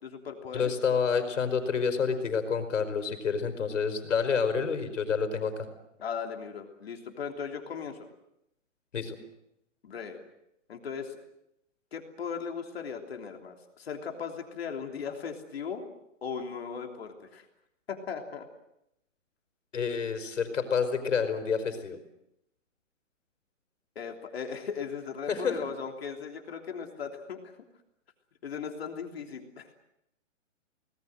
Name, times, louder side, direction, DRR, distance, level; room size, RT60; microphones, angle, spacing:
voice 1, 0.0-0.7 6.0-8.1 9.8-10.2 10.7-11.2 11.9-15.8 16.2-17.4 17.9-18.4 23.9-27.6 28.4-29.7, left 6 dB, 50° left, 4 dB, 3.3 m, -37 dB
voice 2, 0.5-5.7 8.9-9.2 19.7-22.0 25.3-25.6, left 6 dB, 70° left, 8 dB, 5.1 m, -28 dB
26.0 x 19.5 x 7.9 m, 0.80 s
hypercardioid pair, 180°, 38 cm